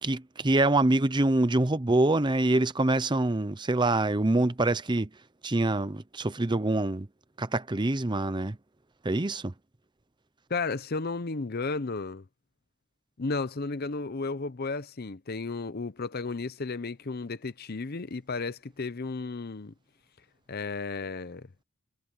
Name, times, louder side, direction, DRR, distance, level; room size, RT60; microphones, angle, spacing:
voice 1, 0.0-5.1 5.4-7.1 7.4-8.6 9.0-9.5, right 2 dB, 20° right, 0.7 m, -25 dB
voice 2, 10.5-12.2 13.2-19.7 20.5-21.5, left 3 dB, 45° left, 0.7 m, -33 dB
head